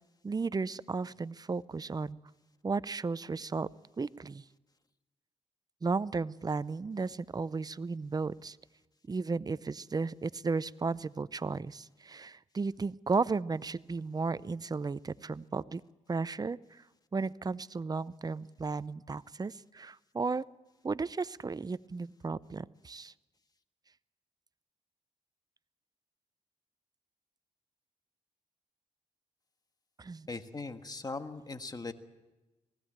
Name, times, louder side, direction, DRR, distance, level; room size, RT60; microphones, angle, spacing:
voice 1, 0.2-2.2 2.6-3.7 4.0-4.4 5.8-8.6 9.1-15.8 16.1-16.8 17.1-20.4 20.8-23.1 30.0-30.3, right 4 dB, 30° right, 18 dB, 0.6 m, -34 dB
voice 2, 30.3-31.9, left 3 dB, 30° left, 8 dB, 1.6 m, -39 dB
20.0 x 16.0 x 8.8 m, 1.1 s
cardioid pair, 60°, 14 cm